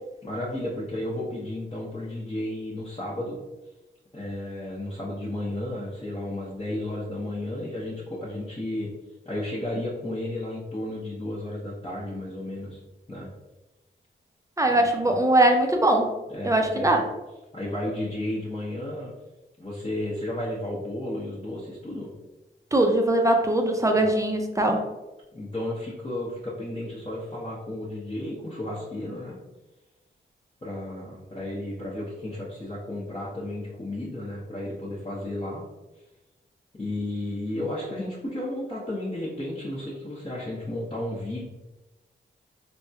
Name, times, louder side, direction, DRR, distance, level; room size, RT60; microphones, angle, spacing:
voice 1, 0.2-3.4 4.1-8.9 9.2-12.8 13.1-13.3 14.7-15.1 16.3-17.0 17.5-19.1 19.6-22.1 23.9-24.1 25.3-29.4 30.6-35.6 36.7-41.4, left 1 dB, 25° left, -8 dB, 0.9 m, -33 dB
voice 2, 14.6-16.1 16.4-17.0 22.7-24.8, right 1 dB, 15° right, 3 dB, 0.6 m, -21 dB
3.4 x 2.2 x 2.7 m, 1.1 s
cardioid pair, 40°, 21 cm